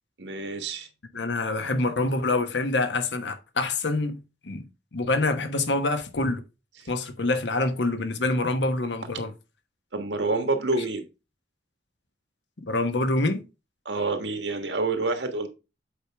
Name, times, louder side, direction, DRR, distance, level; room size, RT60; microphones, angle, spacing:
voice 1, 0.2-0.9 9.9-11.0 13.8-15.5, right 3 dB, 90° right, 1.5 m, -27 dB
voice 2, 1.1-4.2 4.4-4.7 4.9-6.4 6.9-9.3 12.6-13.4, left 2 dB, 85° left, 1.1 m, -26 dB
8.0 x 4.8 x 3.5 m
head